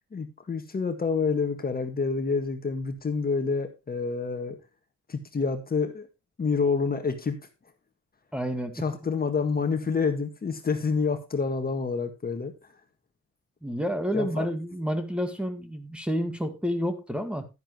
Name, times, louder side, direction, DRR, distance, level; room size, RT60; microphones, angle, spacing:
voice 1, 0.1-4.6 5.1-6.1 6.4-7.4 8.8-12.5 14.1-14.5, left 5 dB, 30° left, 7 dB, 1.7 m, -28 dB
voice 2, 8.3-8.8 13.6-17.5, equal, 5° right, 8 dB, 1.7 m, -29 dB
11.5 x 10.0 x 3.0 m, 0.25 s
cardioid pair, 90°, 30 cm